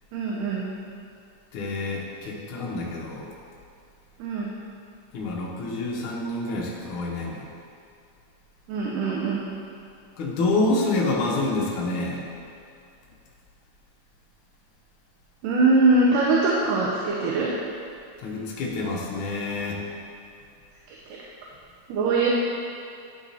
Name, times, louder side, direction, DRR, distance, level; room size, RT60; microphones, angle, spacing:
voice 1, 0.1-0.6 4.2-4.5 8.7-9.4 15.4-17.5 21.1-21.2 21.9-22.3, right 3 dB, 80° right, -4 dB, 2.3 m, -22 dB
voice 2, 1.5-3.3 5.1-7.5 10.2-12.2 18.2-19.8, left 2 dB, 65° left, -3 dB, 1.3 m, -27 dB
11.0 x 4.1 x 4.1 m, 2.5 s
omnidirectional pair, 3.8 m